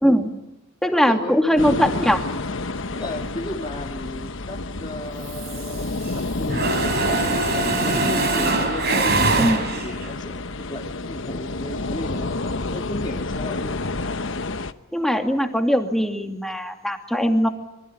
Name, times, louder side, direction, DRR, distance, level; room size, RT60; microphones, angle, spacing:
voice 1, 0.0-0.3 0.8-2.2 9.4-9.6 14.9-17.5, equal, ahead, 4 dB, 2.6 m, -20 dB
voice 2, 0.9-1.6 2.9-6.6 7.0-13.8, left 1 dB, 20° left, -1 dB, 2.5 m, -35 dB
sound 1, 1.6-14.7, left 3 dB, 60° left, 1.1 m, -29 dB
Mechanisms, 5.3-6.2 6.5-10.1, right 3 dB, 50° right, 4.3 m, -23 dB
26.5 x 24.5 x 8.8 m, 0.94 s
head